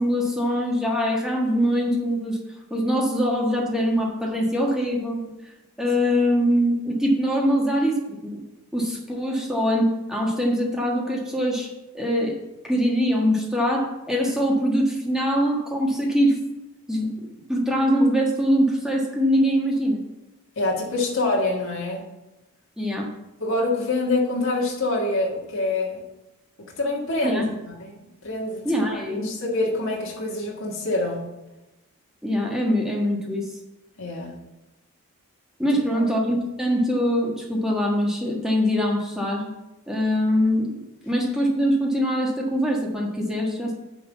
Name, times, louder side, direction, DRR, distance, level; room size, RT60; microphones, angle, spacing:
voice 1, 0.0-2.4 2.7-5.2 5.8-8.4 8.7-11.7 11.9-16.4 16.9-17.1 17.5-20.0 22.8-23.1 27.2-27.4 28.6-29.3 32.2-33.5 35.6-39.5 39.9-40.7 41.0-43.7, equal, ahead, -2 dB, 1.4 m, -23 dB
voice 2, 20.6-22.1 23.4-26.0 26.6-28.0 28.2-31.2 34.0-34.3 35.9-36.1, left 2 dB, 60° left, -3 dB, 1.8 m, -26 dB
9.4 x 3.9 x 7.0 m, 0.97 s
head